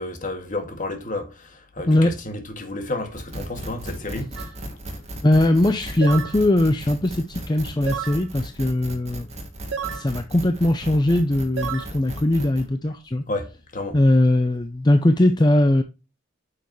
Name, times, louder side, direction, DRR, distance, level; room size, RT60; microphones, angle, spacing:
voice 1, 0.0-4.4 4.7-5.0 13.3-14.0, left 2 dB, 45° left, 2.0 m, -31 dB
sound 1, 3.1-12.6, equal, 35° right, 2.3 m, -36 dB
sound 2, 4.4-4.5 6.0-6.4 7.9-8.2 9.7-10.1 11.6-11.9, right 7 dB, 80° right, 1.4 m, -30 dB
voice 2, 5.2-9.3 9.9-13.2 13.9-15.8, left 1 dB, 20° left, 0.6 m, -20 dB
9.4 x 6.8 x 3.1 m
head